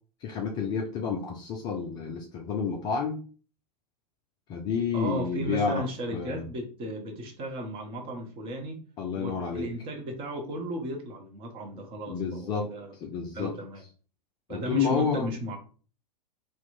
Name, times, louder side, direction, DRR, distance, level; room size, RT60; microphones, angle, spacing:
voice 1, 0.2-3.2 4.5-6.5 9.0-9.7 12.1-13.6 14.5-15.3, left 6 dB, 20° left, 2 dB, 0.3 m, -30 dB
voice 2, 4.9-8.8 9.1-12.9 13.3-13.8 14.5-15.6, right 1 dB, 25° right, 2 dB, 0.8 m, -35 dB
2.8 x 2.1 x 4.1 m, 0.39 s
figure-of-eight pair, 100°, 21 cm